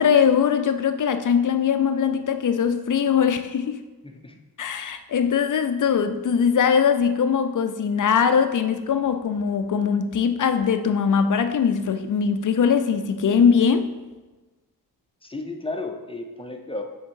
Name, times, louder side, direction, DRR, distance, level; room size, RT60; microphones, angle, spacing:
voice 1, 0.0-3.8 4.6-13.9, left 7 dB, 55° left, 0.5 m, -21 dB
voice 2, 4.0-4.4 15.2-16.8, left 2 dB, 15° left, 0.6 m, -33 dB
7.3 x 3.6 x 4.5 m
wide cardioid pair, 90°, 36 cm